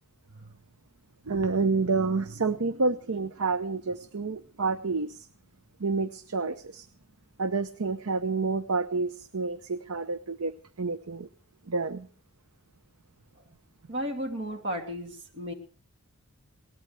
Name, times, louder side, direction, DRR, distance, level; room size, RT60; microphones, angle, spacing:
voice 1, 1.3-5.3 5.8-6.9 7.4-10.5 10.8-11.3 11.7-12.1, right 4 dB, 75° right, 12 dB, 0.8 m, -29 dB
voice 2, 13.9-15.5, equal, 55° right, 4 dB, 2.7 m, -33 dB
21.5 x 18.5 x 3.4 m, 0.39 s
head